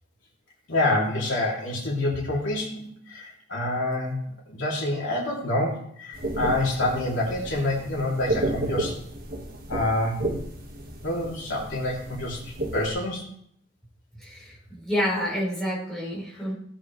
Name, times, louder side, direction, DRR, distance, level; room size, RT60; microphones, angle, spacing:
voice 1, 0.7-4.2 4.5-9.0 9.7-10.2 11.0-13.2, left 1 dB, 75° left, -3 dB, 3.3 m, -27 dB
sound 1, 6.1-12.9, right 1 dB, 45° right, 1.7 m, -32 dB
voice 2, 14.2-16.5, equal, 5° left, -7 dB, 4.8 m, -29 dB
16.5 x 8.6 x 3.3 m, 0.67 s
head